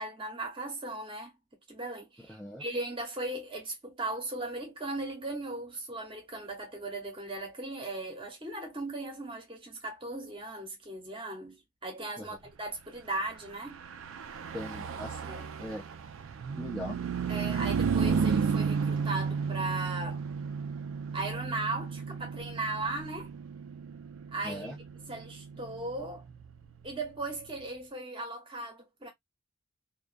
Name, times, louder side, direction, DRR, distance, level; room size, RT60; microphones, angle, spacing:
voice 1, 0.0-1.4 1.7-13.8 15.3-15.5 17.3-20.2 21.1-23.3 24.3-24.7 25.1-26.3 26.8-29.1, right 2 dB, 25° right, 0.8 m, -37 dB
voice 2, 2.2-2.6 12.2-12.3 14.5-15.3 15.6-15.8 16.6-17.0 24.4-24.8, left 1 dB, ahead, 0.4 m, -40 dB
Car passing by / Truck, 13.6-27.4, right 6 dB, 70° right, 0.3 m, -33 dB
2.3 x 2.2 x 2.4 m
head